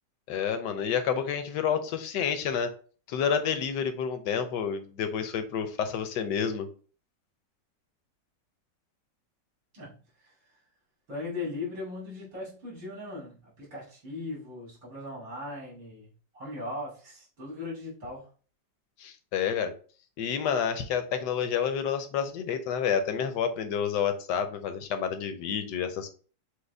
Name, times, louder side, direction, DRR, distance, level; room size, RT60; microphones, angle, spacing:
voice 1, 0.3-2.7 3.1-6.7 19.0-19.7 20.2-26.1, left 7 dB, 75° left, 8 dB, 1.2 m, -29 dB
voice 2, 11.1-18.3, left 2 dB, 70° right, -7 dB, 3.2 m, -38 dB
6.4 x 2.2 x 3.3 m, 0.39 s
omnidirectional pair, 1.9 m